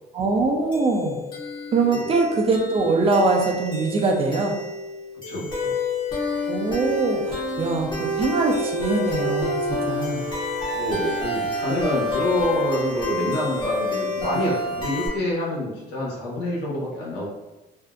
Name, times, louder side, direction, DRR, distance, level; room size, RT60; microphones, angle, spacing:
voice 1, 0.1-1.2 1.7-4.6 6.5-10.2, right 3 dB, 35° right, 2 dB, 0.5 m, -23 dB
sound 1, 0.7-15.1, left 1 dB, 25° left, 0.7 m, -28 dB
voice 2, 5.3-5.7 10.7-17.3, left 1 dB, 75° left, -5 dB, 1.1 m, -27 dB
2.6 x 2.1 x 2.4 m, 1.0 s
cardioid pair, 110°, 17 cm